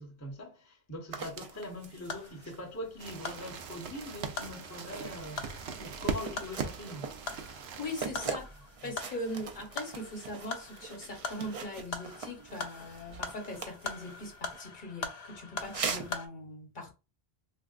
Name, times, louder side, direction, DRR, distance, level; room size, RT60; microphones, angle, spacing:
voice 1, 0.0-7.1 8.8-8.9, left 1 dB, 20° left, 0.6 m, -42 dB
sound 1, 1.1-14.6 15.6-16.2, right 5 dB, 45° right, 0.5 m, -43 dB
sound 2, 1.6-16.3, left 4 dB, 85° left, 0.8 m, -43 dB
sound 3, 3.0-8.1, right 5 dB, 90° right, 0.8 m, -40 dB
voice 2, 7.8-8.5 8.8-16.9, left 1 dB, 55° left, 1.1 m, -41 dB
3.4 x 2.5 x 2.4 m
omnidirectional pair, 1.0 m